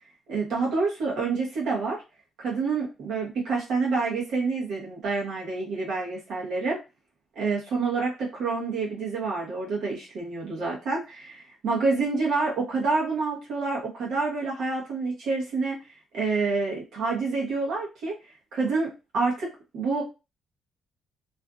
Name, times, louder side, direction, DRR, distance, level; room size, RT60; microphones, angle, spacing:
voice 1, 0.3-2.0 2.4-6.8 7.4-15.8 16.1-18.1 18.5-20.0, right 4 dB, 80° right, -4 dB, 1.0 m, -28 dB
2.5 x 2.4 x 2.3 m, 0.27 s
cardioid pair, 90°, 0 cm